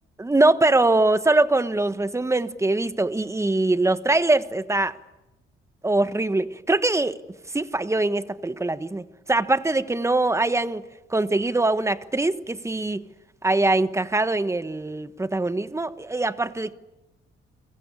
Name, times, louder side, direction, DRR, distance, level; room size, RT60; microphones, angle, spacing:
voice 1, 0.2-4.9 5.8-7.2 7.5-10.8 11.1-13.0 13.4-16.7, right 2 dB, 15° right, 12 dB, 1.3 m, -22 dB
29.5 x 22.5 x 8.5 m, 1.0 s
cardioid pair, 90°, 20 cm